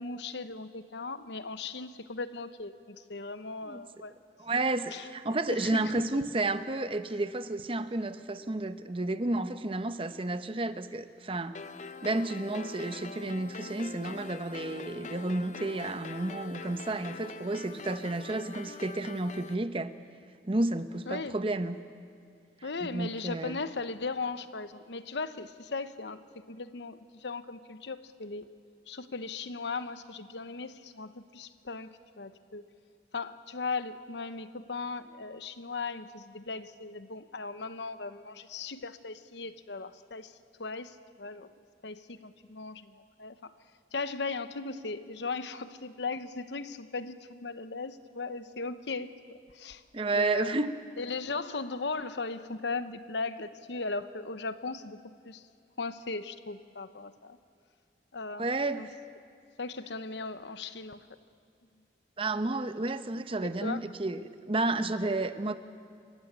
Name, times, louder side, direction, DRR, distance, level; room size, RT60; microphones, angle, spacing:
voice 1, 0.0-4.1 4.9-6.0 21.1-21.4 22.6-28.5 28.9-32.7 33.1-40.3 40.6-41.5 41.8-43.5 43.9-49.8 50.1-50.6 51.0-55.4 55.8-57.4 58.1-58.5 58.8-58.9 59.6-61.0 63.4-63.8, left 4 dB, 75° left, 12 dB, 0.9 m, -38 dB
voice 2, 4.4-11.6 12.0-19.9 20.5-21.8 22.8-23.6 49.9-50.7 58.4-58.8 62.2-65.6, right 2 dB, 30° right, 11 dB, 0.8 m, -31 dB
sound 1, 11.5-19.5, left 4 dB, 40° left, 0.7 m, -43 dB
28.5 x 15.5 x 8.8 m, 2.3 s
head